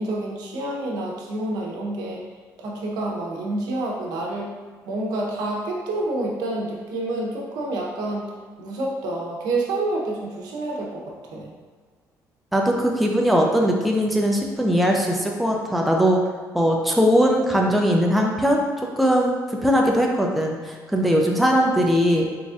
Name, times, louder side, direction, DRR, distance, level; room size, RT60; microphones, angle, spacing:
voice 1, 0.0-2.2 2.6-4.5 4.9-8.3 8.6-11.0 11.3-11.5, right 2 dB, 85° right, -2 dB, 0.8 m, -28 dB
voice 2, 12.5-16.2 16.5-18.6 19.0-22.3, equal, ahead, 0 dB, 0.4 m, -20 dB
4.0 x 3.4 x 2.4 m, 1.5 s
cardioid pair, 145°, 7 cm